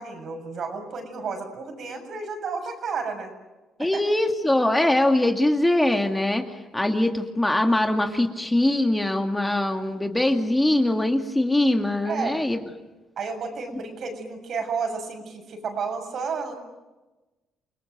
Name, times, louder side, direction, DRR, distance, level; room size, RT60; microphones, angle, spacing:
voice 1, 0.0-3.3 3.8-4.0 12.0-12.4 13.2-16.5, right 5 dB, 55° right, 5 dB, 7.0 m, -31 dB
voice 2, 3.8-6.4 6.7-12.6, left 1 dB, 10° left, 4 dB, 2.2 m, -22 dB
29.5 x 19.0 x 9.3 m, 1.1 s
cardioid pair, 100°, 0 cm